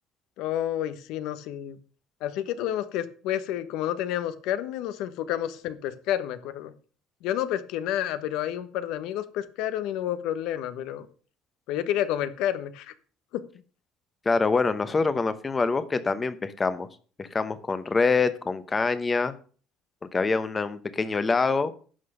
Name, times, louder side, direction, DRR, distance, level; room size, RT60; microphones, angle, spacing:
voice 1, 0.4-1.8 2.2-6.7 7.2-11.1 11.7-12.9 13.3-13.4, left 11 dB, 70° left, 12 dB, 1.2 m, -30 dB
voice 2, 14.2-16.9 17.2-19.3 20.1-21.7, left 4 dB, 20° left, 12 dB, 0.9 m, -25 dB
11.0 x 6.1 x 6.7 m, 0.40 s
cardioid pair, 155°, 0 cm